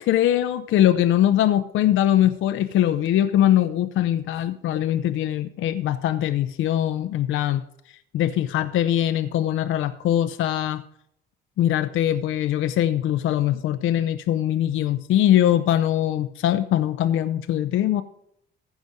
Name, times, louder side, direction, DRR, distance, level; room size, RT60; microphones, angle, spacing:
voice 1, 0.0-7.6 8.1-10.8 11.6-18.0, left 12 dB, 70° left, 11 dB, 0.7 m, -22 dB
15.0 x 6.1 x 5.2 m, 0.71 s
cardioid pair, 120°, 21 cm